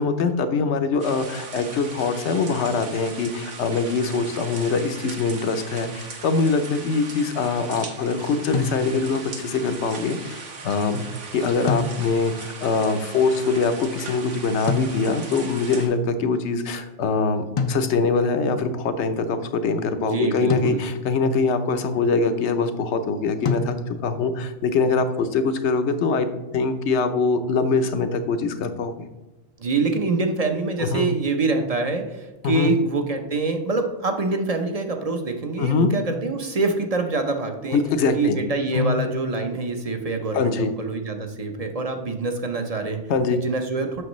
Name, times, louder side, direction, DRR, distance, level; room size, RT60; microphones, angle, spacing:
voice 1, 0.0-11.1 11.3-29.1 30.9-31.1 32.4-32.8 35.6-35.9 37.7-38.4 38.7-39.0 40.3-40.7 43.1-43.4, left 4 dB, 75° left, 9 dB, 1.0 m, -23 dB
sound 1, 1.0-15.9, right 4 dB, 90° right, 1.4 m, -39 dB
sound 2, 8.5-9.3 11.7-12.4 14.7-15.4 17.6-18.3 20.5-21.3 23.4-24.2, left 4 dB, 60° left, 0.3 m, -28 dB
voice 2, 20.0-20.8 29.6-37.8 38.1-43.0 43.3-44.0, right 3 dB, 40° right, 5 dB, 0.7 m, -25 dB
7.8 x 6.2 x 3.1 m, 1.1 s
omnidirectional pair, 1.2 m